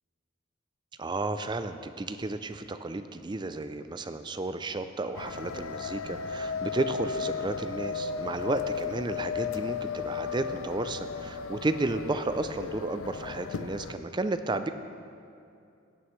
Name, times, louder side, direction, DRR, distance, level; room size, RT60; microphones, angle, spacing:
voice 1, 1.0-14.7, right 2 dB, 20° right, 10 dB, 0.4 m, -32 dB
sound 1, 5.1-13.9, left 6 dB, 90° left, 0.5 m, -35 dB
17.0 x 9.6 x 3.2 m, 2.5 s
head